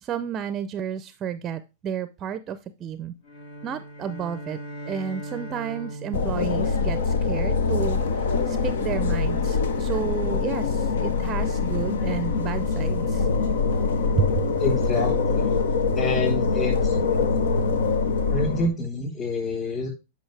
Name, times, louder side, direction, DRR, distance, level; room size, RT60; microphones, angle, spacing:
voice 1, 0.0-3.1 3.6-4.6 4.9-8.0 8.5-13.3 14.2-14.4, right 8 dB, 25° right, 13 dB, 0.5 m, -31 dB
sound 1, 3.2-7.7, right 1 dB, 60° left, 1.8 m, -39 dB
sound 2, 6.1-18.7, left 4 dB, 80° left, 1.0 m, -24 dB
voice 2, 14.6-15.5 15.9-16.9 18.3-19.9, left 3 dB, 25° left, 1 dB, 3.9 m, -27 dB
8.9 x 5.2 x 3.3 m, 0.27 s
hypercardioid pair, 140°, 0 cm